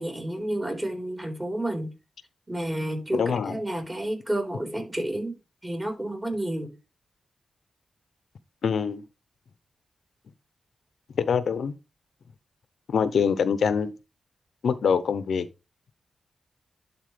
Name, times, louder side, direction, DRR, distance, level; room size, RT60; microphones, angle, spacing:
voice 1, 0.0-1.9 2.5-5.4 5.6-6.7, right 1 dB, 20° right, 4.2 m, -30 dB
voice 2, 3.1-3.6 8.6-9.0 11.2-11.7 12.9-13.9 14.6-15.5, left 6 dB, 75° left, 0.8 m, -24 dB
11.5 x 4.5 x 3.4 m
cardioid pair, 55°, 0 cm